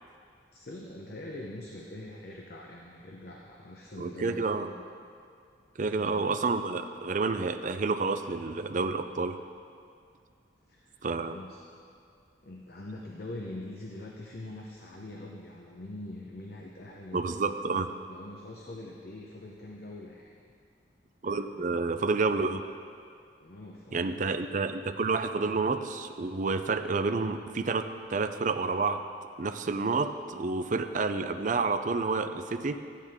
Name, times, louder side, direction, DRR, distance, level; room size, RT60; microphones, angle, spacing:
voice 1, 0.5-4.8 5.9-6.3 10.7-11.0 11.3-11.6 12.4-20.3 21.2-21.8 23.4-24.5, left 1 dB, 55° left, -1 dB, 0.9 m, -44 dB
voice 2, 4.0-4.7 5.8-9.4 11.0-11.4 17.1-17.9 21.2-22.6 23.9-29.0 29.4-32.8, right 4 dB, 45° right, 9 dB, 0.5 m, -29 dB
13.5 x 10.0 x 3.6 m, 2.3 s
head